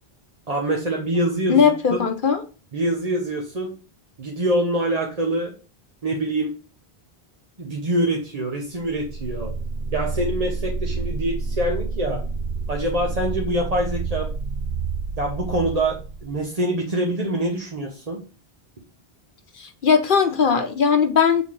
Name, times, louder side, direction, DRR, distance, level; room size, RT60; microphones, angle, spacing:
voice 1, 0.5-2.0 2.7-3.7 4.2-5.5 6.0-6.5 7.6-9.5 9.9-12.2 12.7-14.3 15.2-18.2, right 1 dB, 40° right, 0 dB, 1.1 m, -25 dB
voice 2, 1.5-2.4 19.6-21.4, left 6 dB, 60° left, 6 dB, 0.9 m, -19 dB
sound 1, 8.8-16.5, right 4 dB, 60° right, 0.7 m, -29 dB
7.6 x 4.0 x 3.7 m, 0.35 s
omnidirectional pair, 1.0 m